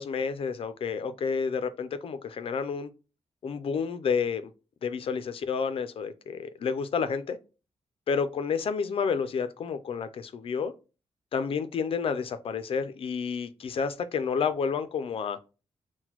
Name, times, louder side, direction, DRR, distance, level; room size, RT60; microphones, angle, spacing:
voice 1, 0.0-2.9 3.4-4.5 4.8-7.4 8.1-10.7 11.3-15.4, left 6 dB, 55° left, 0.4 m, -30 dB
5.8 x 2.2 x 2.9 m
wide cardioid pair, 130°, 11 cm